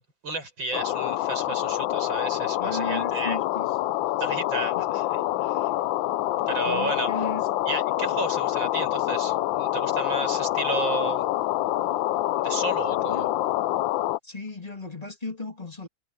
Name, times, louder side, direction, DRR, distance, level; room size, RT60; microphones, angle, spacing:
voice 1, 0.0-3.4 4.2-5.7 6.5-7.1 7.7-11.3 12.4-13.3, right 3 dB, 65° right, 7.1 m, -32 dB
sound 1, 0.7-14.2, left 15 dB, 75° left, 1.3 m, -26 dB
voice 2, 2.6-3.7 4.7-4.8 6.6-7.4 13.1-13.3 14.2-15.9, left 3 dB, 20° left, 3.0 m, -35 dB
omnidirectional pair, 2.2 m